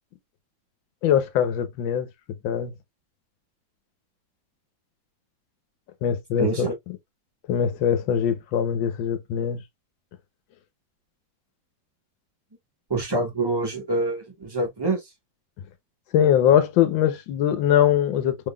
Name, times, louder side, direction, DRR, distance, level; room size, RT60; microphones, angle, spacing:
voice 1, 1.0-2.1 2.4-2.7 6.0-6.7 7.5-9.6 16.1-18.5, left 9 dB, 85° left, 1.5 m, -22 dB
voice 2, 6.4-6.7 12.9-15.0, right 2 dB, 15° right, 1.0 m, -26 dB
3.8 x 3.5 x 2.2 m
omnidirectional pair, 2.0 m